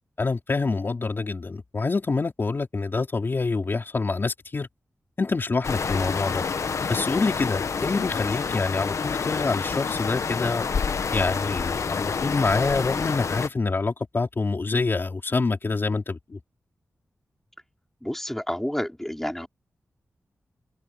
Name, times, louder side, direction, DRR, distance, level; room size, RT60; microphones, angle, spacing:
voice 1, 0.2-4.7 5.2-6.4 6.9-10.7 11.1-16.4, left 3 dB, 40° left, 4.8 m, -26 dB
sound 1, 5.6-13.5, left 5 dB, 65° left, 1.1 m, -28 dB
voice 2, 18.0-19.5, equal, 5° left, 4.3 m, -29 dB
wide cardioid pair, 115°, 5 cm